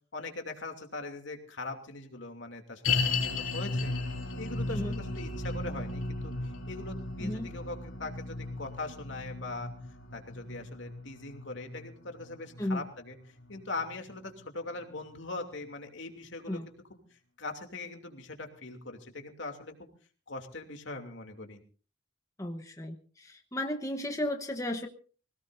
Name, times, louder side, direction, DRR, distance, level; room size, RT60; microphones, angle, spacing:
voice 1, 0.1-3.9 4.4-6.3 6.7-9.7 10.1-19.9 20.3-21.6, left 2 dB, 65° left, 4 dB, 2.8 m, -41 dB
sound 1, 2.8-14.1 14.4-14.5 15.1-15.2, left 3 dB, 85° left, 3.1 m, -35 dB
voice 2, 22.4-24.9, left 1 dB, 15° left, 4 dB, 1.0 m, -34 dB
25.0 x 17.5 x 2.7 m, 0.40 s
head